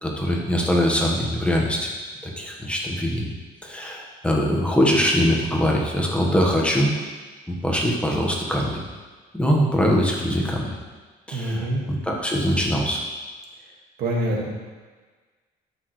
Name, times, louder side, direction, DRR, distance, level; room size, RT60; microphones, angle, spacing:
voice 1, 0.0-1.9 2.4-3.3 3.6-6.9 7.5-8.8 9.3-10.7 11.3-13.0, equal, 5° left, -2 dB, 1.3 m, -22 dB
voice 2, 11.3-11.8 14.0-14.5, right 1 dB, 70° right, -1 dB, 1.9 m, -25 dB
12.5 x 6.3 x 3.2 m, 1.4 s
cardioid pair, 110°, 17 cm